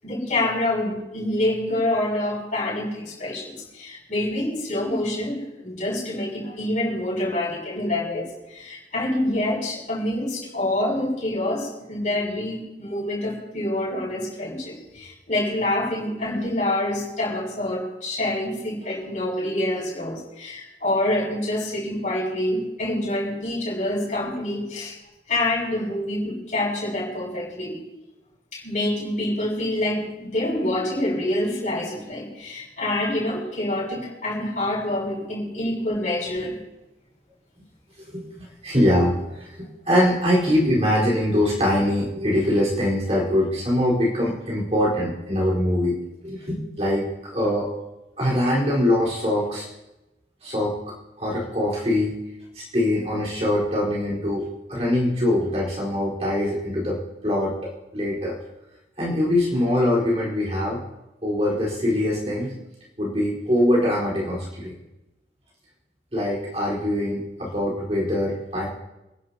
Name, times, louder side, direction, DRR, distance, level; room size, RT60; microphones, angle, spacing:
voice 1, 0.0-24.9 25.3-27.8 28.5-36.6, left 1 dB, 45° left, -5 dB, 6.9 m, -26 dB
voice 2, 38.1-46.0 46.2-47.7 48.2-49.7 50.4-50.8 51.2-52.2 52.5-58.4 59.0-60.8 61.2-62.5 63.0-64.7 66.1-68.7, left 1 dB, 35° right, -6 dB, 4.4 m, -23 dB
28.0 x 11.5 x 2.9 m, 0.98 s
head